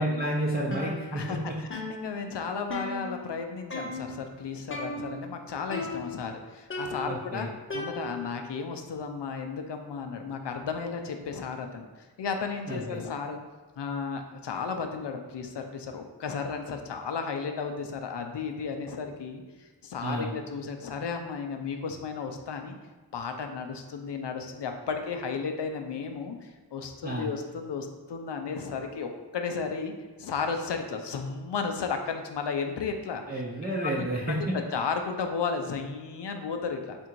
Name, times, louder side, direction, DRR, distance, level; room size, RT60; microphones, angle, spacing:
voice 1, 0.0-1.4 7.1-7.5 12.7-13.0 20.0-20.3 27.0-27.3 33.3-34.5, right 1 dB, 20° right, -5 dB, 0.6 m, -30 dB
sound 1, 0.7-1.4 1.7-3.4 3.7-4.3 4.7-5.4 5.7-6.3 6.7-8.4, left 2 dB, 30° left, 0.7 m, -37 dB
voice 2, 1.1-7.5 7.7-13.4 13.8-22.7 23.1-29.9 30.2-33.2 33.8-34.4 34.7-37.0, left 5 dB, 70° left, 5 dB, 0.6 m, -34 dB
3.6 x 2.6 x 4.5 m, 1.3 s
cardioid pair, 55°, 43 cm